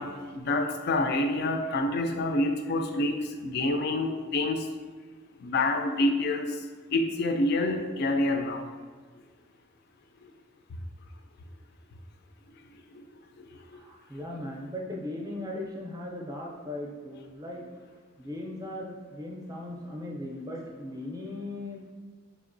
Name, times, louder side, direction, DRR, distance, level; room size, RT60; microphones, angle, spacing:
voice 1, 0.0-4.7 5.4-8.7 10.2-10.3 12.7-13.1 13.4-13.8, left 2 dB, 55° left, 6 dB, 0.3 m, -28 dB
voice 2, 13.7-17.6 17.9-21.9, left 1 dB, 20° right, -2 dB, 0.5 m, -38 dB
4.1 x 2.9 x 2.6 m, 1.5 s
head